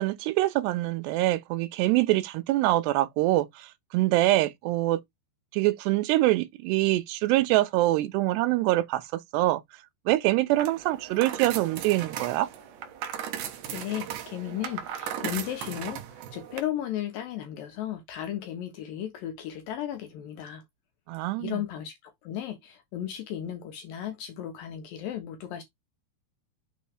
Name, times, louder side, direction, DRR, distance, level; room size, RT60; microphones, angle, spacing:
voice 1, 0.0-5.0 5.5-9.6 10.1-12.5 21.1-21.6, right 17 dB, 85° right, 2.8 m, -25 dB
sound 1, 10.5-16.6, right 9 dB, 70° right, 2.0 m, -37 dB
voice 2, 13.7-20.6 21.4-25.6, left 11 dB, 75° left, 2.2 m, -35 dB
6.7 x 3.0 x 4.9 m
omnidirectional pair, 4.9 m